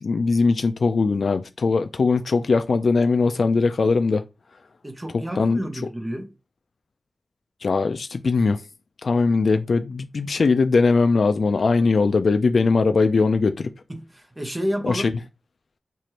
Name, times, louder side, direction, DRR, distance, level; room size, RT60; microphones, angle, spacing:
voice 1, 0.0-4.2 5.4-5.6 7.6-8.6 9.0-13.7 14.8-15.1, left 4 dB, 70° left, 0.3 m, -20 dB
voice 2, 4.8-6.3 13.9-15.1, equal, 20° right, 0.8 m, -30 dB
4.7 x 2.5 x 2.8 m
wide cardioid pair, 90°, 0 cm